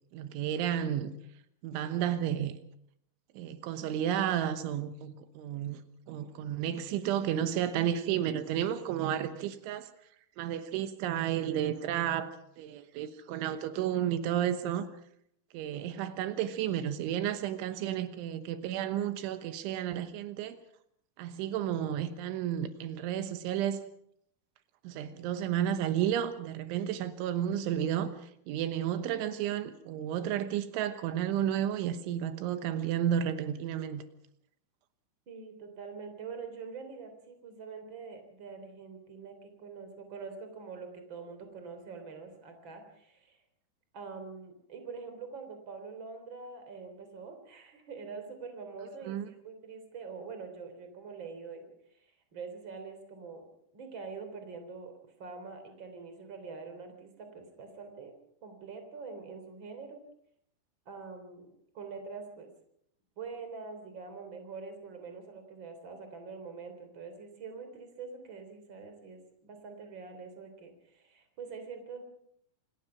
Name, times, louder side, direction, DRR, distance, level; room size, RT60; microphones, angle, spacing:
voice 1, 0.1-1.1 1.6-2.6 3.4-5.8 6.1-9.9 10.4-14.9 15.5-20.6 21.2-23.8 24.9-28.1 28.5-34.0 49.1-49.3, right 10 dB, 85° right, 3.6 m, -32 dB
voice 2, 35.3-43.4 43.9-51.7 52.0-53.5 53.7-54.9 55.2-58.1 58.4-60.0 60.9-61.5 61.7-62.5 63.2-72.1, right 5 dB, 30° right, 3.5 m, -45 dB
27.0 x 18.0 x 5.9 m
omnidirectional pair, 5.3 m